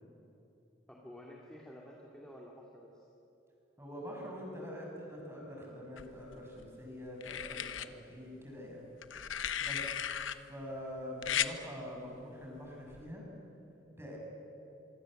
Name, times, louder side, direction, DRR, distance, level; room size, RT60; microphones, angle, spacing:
voice 1, 0.9-3.1 9.8-9.9, equal, 5° left, -3 dB, 2.4 m, -51 dB
voice 2, 3.8-8.8 9.6-9.9 10.3-13.2 14.0-14.2, equal, 15° right, -2 dB, 6.5 m, -45 dB
sound 1, 6.0-6.6 7.2-7.9 9.0-10.4 11.2-11.5 12.9-13.1, left 9 dB, 85° left, 0.9 m, -36 dB
25.0 x 24.5 x 7.8 m, 2.9 s
head